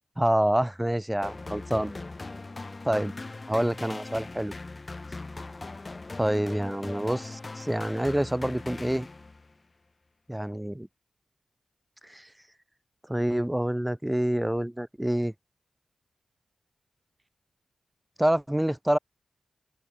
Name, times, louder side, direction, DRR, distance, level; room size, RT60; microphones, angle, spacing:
voice 1, 0.2-2.0 2.8-3.1 3.5-4.5 6.2-9.1 10.3-10.9 12.0-12.3 13.1-15.3 18.2-19.0, right 1 dB, 10° right, 1.4 m, -27 dB
sound 1, 1.2-9.5, left 3 dB, 35° left, 1.8 m, -40 dB
open air
cardioid pair, 60°, 0 cm